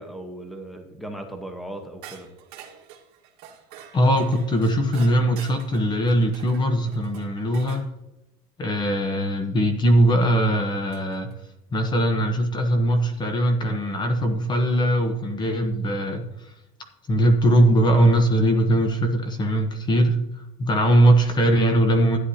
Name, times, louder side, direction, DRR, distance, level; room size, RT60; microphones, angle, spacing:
voice 1, 0.0-2.3, right 1 dB, ahead, 4 dB, 1.0 m, -37 dB
sound 1, 2.0-7.9 9.9-10.0 10.9-11.4, right 8 dB, 60° right, 1.6 m, -46 dB
voice 2, 3.9-7.8 8.6-11.3 11.7-16.5 17.1-20.2 20.6-22.2, right 1 dB, 25° left, 5 dB, 1.0 m, -20 dB
13.0 x 9.7 x 2.8 m, 0.90 s
cardioid pair, 145°, 19 cm